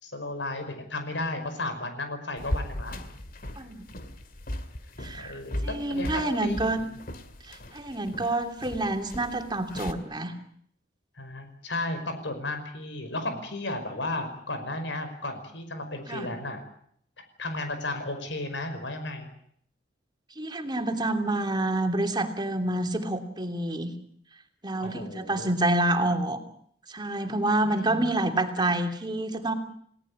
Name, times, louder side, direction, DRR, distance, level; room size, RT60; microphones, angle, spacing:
voice 1, 0.0-2.9 5.1-7.0 11.2-16.6 17.4-19.3 24.8-25.5 27.7-28.1, left 2 dB, 90° left, 7 dB, 5.4 m, -34 dB
sound 1, 2.4-9.9, left 1 dB, 50° left, 2.3 m, -37 dB
voice 2, 5.0-5.4 5.6-6.8 7.4-10.4 16.1-16.3 20.4-23.9 24.6-26.4 26.9-29.5, right 2 dB, 25° right, 6 dB, 3.0 m, -28 dB
30.0 x 18.0 x 8.7 m, 0.67 s
head